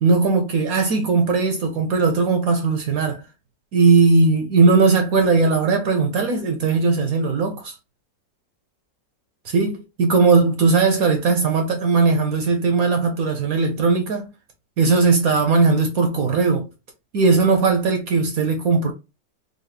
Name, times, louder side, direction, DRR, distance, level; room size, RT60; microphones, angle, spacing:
voice 1, 0.0-3.2 3.7-7.7 9.5-14.3 14.8-16.7 17.1-18.9, right 4 dB, 65° right, 0.9 m, -18 dB
3.9 x 2.3 x 3.2 m
omnidirectional pair, 2.0 m